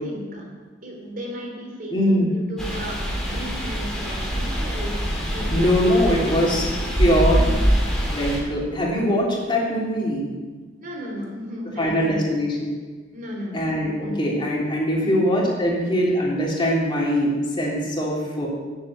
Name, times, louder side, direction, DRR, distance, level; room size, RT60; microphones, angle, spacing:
voice 1, 0.0-0.5 0.8-6.5 7.3-7.6 10.8-12.2 13.1-13.6 14.0-14.2 15.0-15.3, equal, 50° right, -1 dB, 3.4 m, -34 dB
voice 2, 1.9-2.3 5.5-6.6 7.0-7.4 8.1-10.3 11.8-12.7 13.5-18.5, equal, 25° left, -4 dB, 3.1 m, -22 dB
sound 1, 2.6-8.4, equal, ahead, 2.8 m, -24 dB
10.0 x 8.3 x 8.2 m, 1.4 s
head